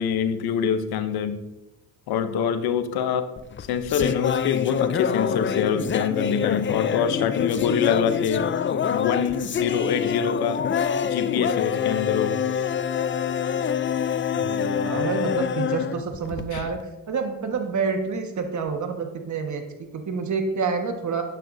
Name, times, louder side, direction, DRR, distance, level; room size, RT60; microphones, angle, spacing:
voice 1, 0.0-1.4 2.1-3.3 3.6-8.5 8.9-10.6 11.0-12.4 16.5-16.7, left 7 dB, 85° left, 10 dB, 0.9 m, -25 dB
sound 1, 3.4-16.8, left 8 dB, 30° left, 0.5 m, -26 dB
voice 2, 14.3-16.8 17.1-21.2, right 5 dB, 50° right, 5 dB, 1.6 m, -28 dB
12.0 x 9.5 x 2.7 m, 1.0 s
cardioid pair, 75°, 37 cm